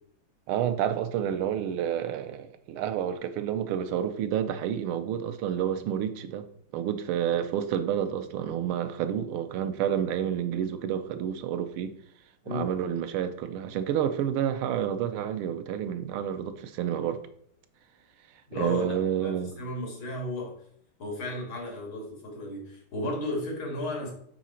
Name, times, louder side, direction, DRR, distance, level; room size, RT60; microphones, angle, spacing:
voice 1, 0.5-6.5 6.7-11.9 12.5-17.2 18.6-19.6, right 9 dB, 90° right, 1.6 m, -29 dB
voice 2, 18.5-19.0 19.2-20.6 21.0-24.1, left 1 dB, 70° left, 3.1 m, -34 dB
8.8 x 4.0 x 4.3 m
omnidirectional pair, 2.3 m